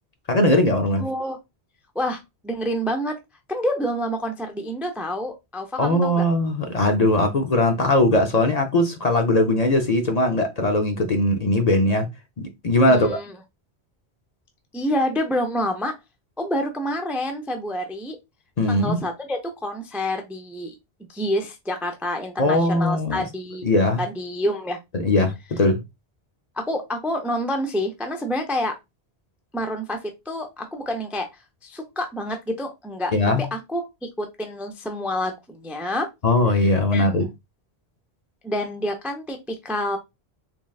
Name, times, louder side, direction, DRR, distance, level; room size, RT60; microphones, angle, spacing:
voice 1, 0.3-1.0 5.8-12.1 12.4-13.2 18.6-19.0 22.4-23.2 23.6-24.0 24.9-25.8 33.1-33.4 36.2-37.2, left 1 dB, 45° left, 0.6 m, -20 dB
voice 2, 1.0-1.4 1.9-3.2 3.5-6.2 12.9-13.3 14.7-15.9 16.4-18.2 18.7-20.7 21.0-23.7 24.0-24.8 26.6-28.8 29.5-31.3 31.6-33.8 34.2-36.1 36.5-36.6 36.9-37.0 38.4-40.0, equal, ahead, 0.3 m, -28 dB
3.7 x 3.2 x 2.3 m
omnidirectional pair, 1.1 m